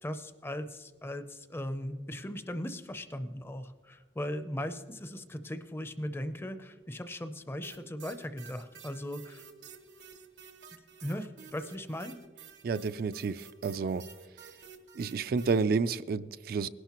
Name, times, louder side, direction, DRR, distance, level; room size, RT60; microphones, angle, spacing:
voice 1, 0.0-9.4 10.7-12.2, left 1 dB, 15° left, 10 dB, 0.5 m, -38 dB
sound 1, 7.6-15.6, right 6 dB, 85° right, 1.1 m, -51 dB
voice 2, 12.6-14.0 14.9-16.7, right 4 dB, 55° right, 12 dB, 0.3 m, -30 dB
19.5 x 11.5 x 3.0 m, 1.4 s
head